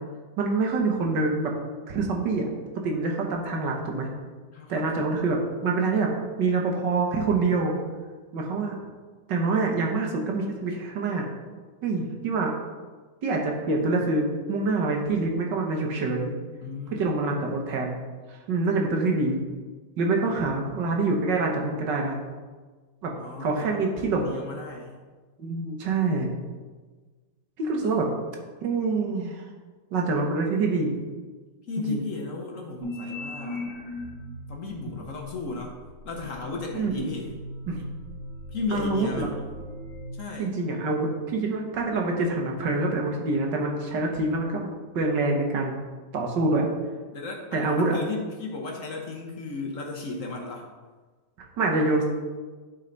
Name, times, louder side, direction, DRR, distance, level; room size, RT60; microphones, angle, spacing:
voice 1, 0.4-1.5 1.9-2.4 2.8-4.1 4.7-6.1 6.4-7.7 8.3-8.8 9.3-11.3 11.8-12.5 13.2-16.3 17.0-17.9 18.3-19.4 20.0-22.2 23.0-23.1 23.4-24.2 25.4-26.3 27.6-28.0 28.6-29.5 29.9-31.0 31.9-32.0 36.7-37.1 37.7-37.8 38.7-39.3 40.4-44.7 44.9-45.8 46.1-46.7 47.5-48.0 51.6-52.0, right 3 dB, 70° right, 1 dB, 1.7 m, -26 dB
voice 2, 4.5-5.1 16.6-17.4 20.2-20.6 23.1-25.0 27.8-28.1 31.7-33.7 34.5-35.8 36.0-37.3 38.5-39.3 40.1-40.5 47.1-50.7, left 3 dB, 55° left, 0 dB, 1.0 m, -35 dB
sound 1, 32.8-34.5 35.2-40.1, left 1 dB, 50° right, 2.8 m, -38 dB
11.0 x 4.5 x 3.9 m, 1.4 s
omnidirectional pair, 2.0 m